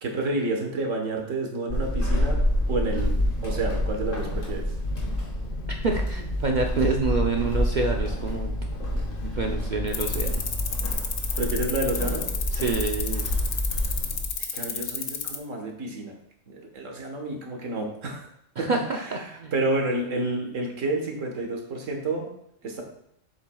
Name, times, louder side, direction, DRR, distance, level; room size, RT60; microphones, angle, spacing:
voice 1, 0.0-2.4 2.7-3.1 3.4-4.6 11.3-12.3 14.4-16.2 16.5-18.3 18.6-22.3 22.6-22.8, right 2 dB, 80° right, 2 dB, 1.7 m, -29 dB
Walk footsteps / Squeak, 1.7-14.4, left 1 dB, 45° left, 1.6 m, -28 dB
voice 2, 5.8-8.5 9.2-10.4 12.5-13.2 18.6-19.5, right 4 dB, 50° right, 2 dB, 0.6 m, -27 dB
sound 1, 9.9-15.4, left 8 dB, 65° left, 1.0 m, -31 dB
7.3 x 7.2 x 2.3 m, 0.75 s
omnidirectional pair, 1.3 m